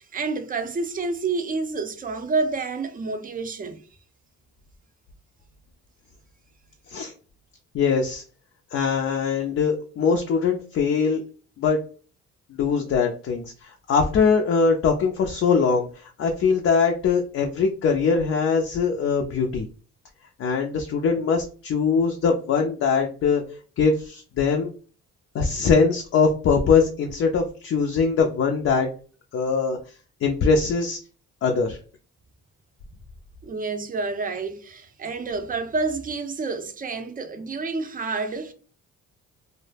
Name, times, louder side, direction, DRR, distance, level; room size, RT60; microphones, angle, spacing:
voice 1, 0.0-3.8 33.4-38.5, right 3 dB, 25° right, 0.5 m, -29 dB
voice 2, 7.7-8.2 8.7-11.2 11.6-11.8 12.6-13.5 13.9-15.9 16.2-19.6 20.4-23.4 23.8-24.7 25.3-28.9 29.3-29.8 30.2-31.0 31.4-31.8, left 5 dB, 50° left, 0.4 m, -22 dB
2.1 x 2.0 x 3.2 m
cardioid pair, 80°, 31 cm